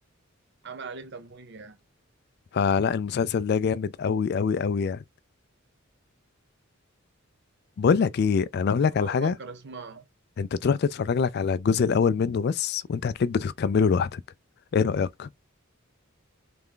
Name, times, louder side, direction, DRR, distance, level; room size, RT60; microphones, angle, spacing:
voice 1, 0.6-1.8 8.9-10.0, right 4 dB, 55° right, 0.8 m, -40 dB
voice 2, 2.5-5.0 7.8-9.3 10.4-14.2 14.7-15.3, left 6 dB, 50° left, 0.3 m, -24 dB
3.4 x 3.3 x 3.7 m
head